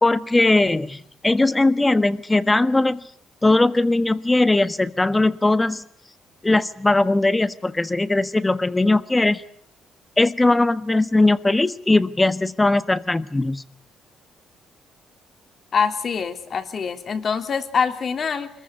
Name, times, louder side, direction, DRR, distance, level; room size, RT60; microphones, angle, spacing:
voice 1, 0.0-3.0 3.4-5.8 6.4-9.4 10.2-13.6, left 2 dB, 15° left, 13 dB, 1.4 m, -19 dB
voice 2, 15.7-18.5, left 6 dB, 50° left, 7 dB, 3.3 m, -24 dB
25.0 x 22.0 x 8.5 m, 0.63 s
cardioid pair, 90°, 0 cm